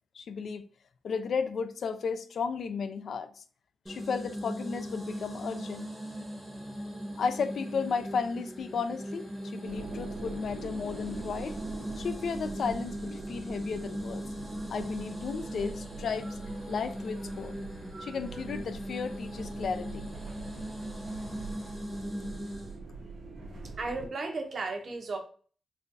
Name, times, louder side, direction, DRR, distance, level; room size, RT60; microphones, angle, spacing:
voice 1, 0.1-0.6 1.0-3.4 3.9-5.9 7.2-11.6 12.0-14.2 14.7-16.4 16.7-17.5 18.0-20.1, left 5 dB, 70° left, 0.3 m, -34 dB
sound 1, 3.9-22.8, equal, 5° right, 0.8 m, -39 dB
sound 2, 9.6-24.1, right 3 dB, 85° right, 1.1 m, -44 dB
voice 2, 23.8-25.2, right 3 dB, 55° right, 0.8 m, -34 dB
3.8 x 2.4 x 2.6 m
cardioid pair, 90°, 0 cm